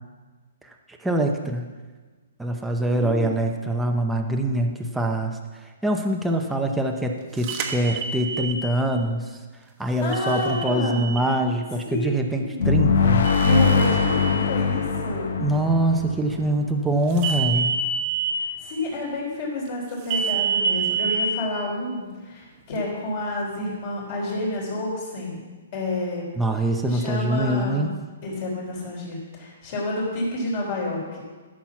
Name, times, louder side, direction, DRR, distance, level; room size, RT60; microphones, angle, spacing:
voice 1, 1.0-1.7 2.4-9.4 9.8-13.3 15.4-17.8 26.3-27.9, right 1 dB, 5° right, 1 dB, 0.7 m, -24 dB
voice 2, 2.8-3.3 10.0-11.1 11.9-12.7 13.4-15.4 18.6-25.4 25.7-26.2 26.9-27.9 28.2-31.2, left 1 dB, 40° left, -4 dB, 3.8 m, -29 dB
sound 1, 7.4-8.6 10.1-11.2 13.2-14.3 17.2-18.3 20.1-21.2, right 6 dB, 30° right, 1.1 m, -27 dB
sound 2, 12.6-17.2, left 5 dB, 70° left, 1.1 m, -22 dB
13.0 x 6.1 x 5.9 m, 1.3 s
hypercardioid pair, 165°, 0 cm